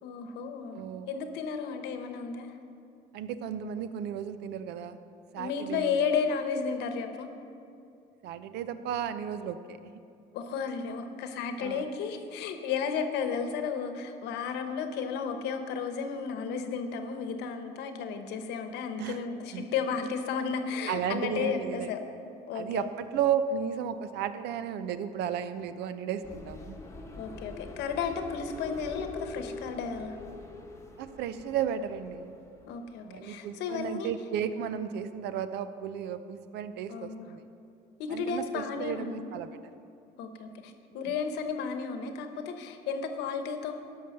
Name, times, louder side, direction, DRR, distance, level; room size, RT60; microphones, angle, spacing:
voice 1, 0.0-0.8 1.1-2.5 5.4-7.3 10.3-22.1 22.5-22.9 27.2-30.2 32.7-34.1 36.9-37.3 38.0-39.3 40.2-43.7, left 6 dB, 85° left, 7 dB, 1.0 m, -33 dB
voice 2, 0.7-1.1 3.1-5.0 5.3-6.0 8.2-10.0 11.6-11.9 19.0-19.2 19.5-19.6 20.9-21.9 22.5-26.8 31.0-32.4 33.1-37.4 38.1-39.5 41.0-41.1, right 8 dB, 80° right, 12 dB, 0.6 m, -34 dB
sound 1, 26.2-32.8, left 3 dB, 15° left, 1.1 m, -44 dB
12.5 x 5.7 x 6.6 m, 2.6 s
cardioid pair, 110°, 17 cm